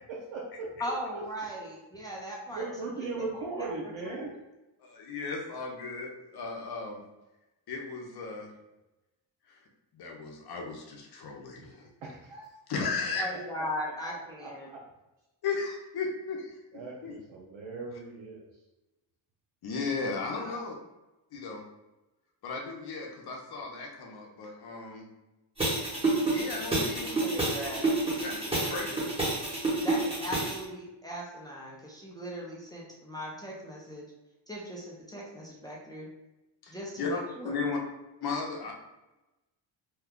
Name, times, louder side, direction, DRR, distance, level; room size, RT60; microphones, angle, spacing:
voice 1, 0.1-0.7 1.1-1.2 2.5-4.3 12.0-12.5 14.4-14.8 16.7-18.4, right 3 dB, 70° right, -4 dB, 0.7 m, -38 dB
voice 2, 0.8-2.7 3.0-3.1 3.6-4.3 13.2-14.7 20.3-20.6 27.0-27.8 28.6-28.9 29.8-34.1 34.5-36.1 36.7-37.6, equal, 10° left, -4 dB, 0.6 m, -39 dB
voice 3, 4.8-7.0 7.7-8.5 9.5-9.6 9.9-11.9 12.7-13.2 15.4-16.5 17.0-17.1 19.6-20.7 21.3-21.6 22.4-25.1 26.3-27.1 28.2-28.9 36.6-37.8 38.2-38.7, left 4 dB, 55° left, 1 dB, 0.8 m, -35 dB
sound 1, 25.6-30.6, right 2 dB, 10° right, 1.1 m, -29 dB
2.9 x 2.2 x 3.6 m, 1.0 s
cardioid pair, 115°, 46 cm